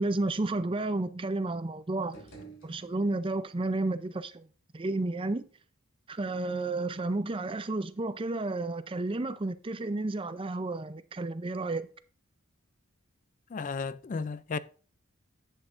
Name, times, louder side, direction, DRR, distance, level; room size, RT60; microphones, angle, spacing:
voice 1, 0.0-2.2 2.6-4.5 4.7-5.4 6.1-11.9, right 2 dB, 25° right, 0.5 m, -31 dB
sound 1, 2.0-3.4, right 3 dB, 70° left, 3.5 m, -51 dB
voice 2, 13.5-14.6, left 5 dB, 40° left, 0.3 m, -34 dB
11.0 x 8.1 x 2.6 m
head